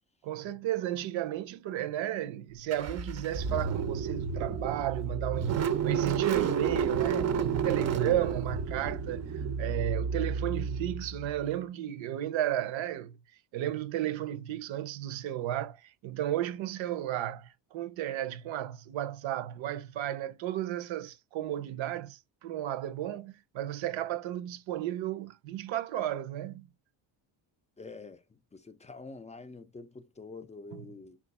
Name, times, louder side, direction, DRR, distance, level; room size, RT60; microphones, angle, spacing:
voice 1, 0.2-13.2 13.5-26.7 30.7-30.8, right 12 dB, 70° right, 0.7 m, -34 dB
Car / Engine starting, 2.7-11.5, right 7 dB, 35° right, 0.5 m, -31 dB
voice 2, 27.8-28.2 28.5-31.2, left 3 dB, 15° left, 0.4 m, -46 dB
4.5 x 2.4 x 4.1 m
cardioid pair, 115°, 47 cm